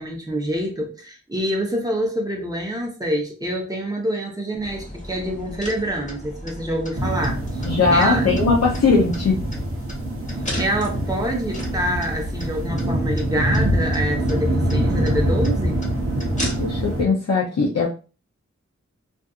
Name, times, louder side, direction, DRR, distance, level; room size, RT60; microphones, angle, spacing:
voice 1, 0.0-7.6 7.9-8.3 10.6-15.8, right 1 dB, 10° right, -1 dB, 0.9 m, -26 dB
sound 1, 4.6-17.0, equal, 25° left, 1.3 m, -35 dB
sound 2, 7.0-17.0, right 1 dB, 50° right, 0.8 m, -24 dB
voice 2, 7.6-9.4 16.6-17.9, left 4 dB, 60° left, -4 dB, 0.7 m, -19 dB
2.6 x 2.5 x 2.4 m, 0.34 s
wide cardioid pair, 55°, 30 cm